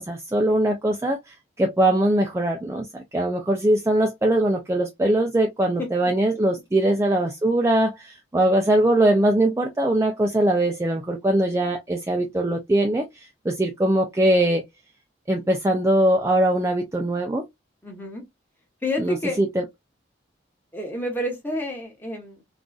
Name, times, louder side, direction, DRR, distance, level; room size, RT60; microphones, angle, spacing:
voice 1, 0.0-14.6 15.3-17.4 19.0-19.6, right 1 dB, 15° right, 0.3 m, -21 dB
voice 2, 5.8-6.1 17.8-18.2 18.8-19.4 20.7-22.4, left 1 dB, 10° left, 1.0 m, -29 dB
3.8 x 2.4 x 2.3 m
head